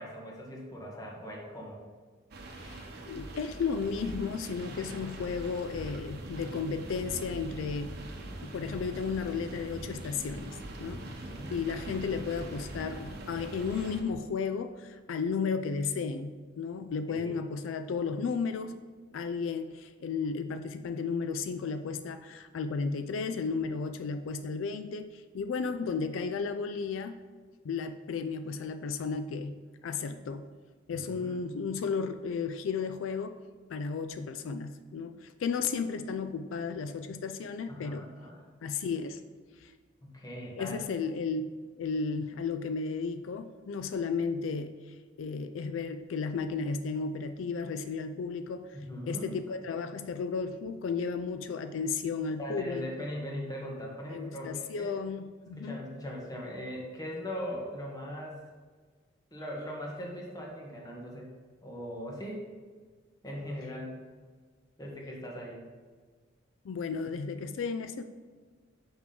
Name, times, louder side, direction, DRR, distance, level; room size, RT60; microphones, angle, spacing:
voice 1, 0.0-1.8 11.0-11.5 17.1-17.4 31.0-31.4 37.7-38.5 40.0-40.8 48.7-49.3 52.4-54.9 55.6-58.4 59.3-61.3 61.6-62.5 63.2-63.9 64.8-65.6, equal, 20° left, -2 dB, 1.3 m, -40 dB
sound 1, 2.3-14.0, right 1 dB, 55° right, 0.9 m, -42 dB
voice 2, 2.6-7.9 8.4-18.8 19.1-27.2 27.6-29.6 29.8-30.5 30.9-33.4 33.7-38.1 38.6-39.2 39.6-39.7 40.6-41.5 41.8-48.7 49.1-52.8 54.1-55.8 66.6-68.0, left 5 dB, 85° left, 9 dB, 0.4 m, -34 dB
6.1 x 5.9 x 3.8 m, 1.5 s
head